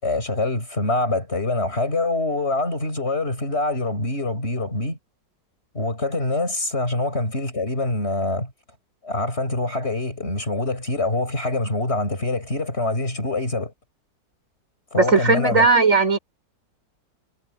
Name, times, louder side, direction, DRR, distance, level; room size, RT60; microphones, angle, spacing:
voice 1, 0.0-5.0 5.7-8.5 9.0-13.7 14.9-15.7, left 2 dB, 35° left, 6.5 m, -25 dB
voice 2, 15.0-16.2, right 4 dB, 45° right, 4.7 m, -17 dB
omnidirectional pair, 1.9 m